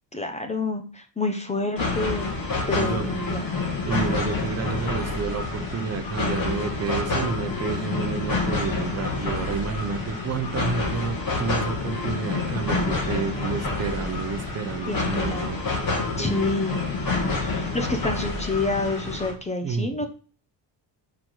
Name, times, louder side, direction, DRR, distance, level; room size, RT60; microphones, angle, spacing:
voice 1, 0.1-2.3 2.7-3.4 14.9-15.5 16.2-16.8 17.4-20.1, left 2 dB, 15° left, 6 dB, 0.7 m, -28 dB
sound 1, 1.8-19.3, left 3 dB, 50° left, 2.2 m, -28 dB
voice 2, 2.7-3.1 3.9-15.6 16.2-16.5 19.6-20.1, right 6 dB, 35° right, 6 dB, 0.7 m, -30 dB
5.1 x 4.6 x 6.2 m, 0.38 s
cardioid pair, 165°, 45 cm